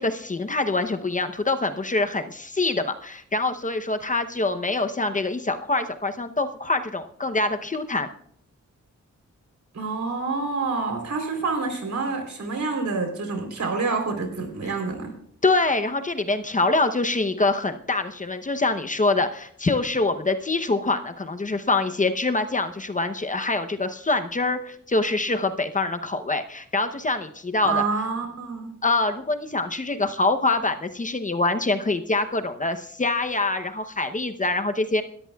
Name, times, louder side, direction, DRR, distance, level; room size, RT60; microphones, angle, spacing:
voice 1, 0.0-8.1 15.4-27.8 28.8-35.0, left 3 dB, 25° left, 8 dB, 0.8 m, -25 dB
voice 2, 9.7-15.1 27.6-28.7, right 4 dB, 70° right, 4 dB, 3.6 m, -27 dB
28.0 x 13.0 x 2.3 m, 0.67 s
wide cardioid pair, 115°, 29 cm